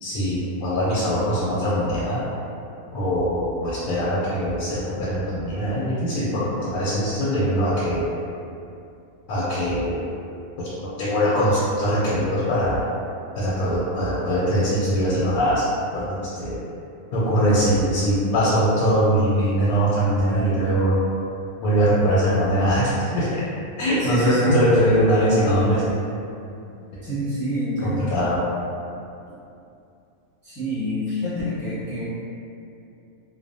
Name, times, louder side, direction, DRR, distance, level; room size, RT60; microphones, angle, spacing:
voice 1, 0.0-2.2 2.9-8.1 9.3-10.1 10.6-10.7 11.0-12.8 13.4-15.6 15.9-16.6 17.1-21.0 21.6-23.4 23.8-25.9 27.8-28.4, equal, 85° left, -8 dB, 1.1 m, -22 dB
voice 2, 24.0-24.6 27.0-28.1 30.4-32.0, right 1 dB, 20° left, -16 dB, 0.5 m, -26 dB
2.7 x 2.0 x 2.6 m, 2.6 s
omnidirectional pair, 1.5 m